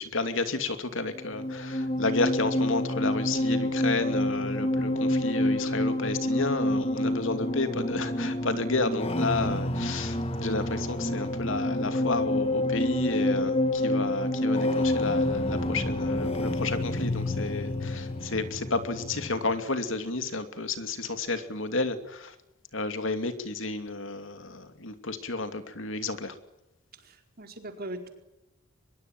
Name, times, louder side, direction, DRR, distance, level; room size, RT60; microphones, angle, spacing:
voice 1, 0.0-22.3 22.7-26.4, left 3 dB, 65° left, 9 dB, 2.7 m, -31 dB
sound 1, 1.1-19.6, left 1 dB, 30° left, 2.3 m, -28 dB
voice 2, 26.9-28.1, right 1 dB, 45° right, 5 dB, 4.6 m, -40 dB
23.5 x 22.0 x 9.1 m, 0.93 s
head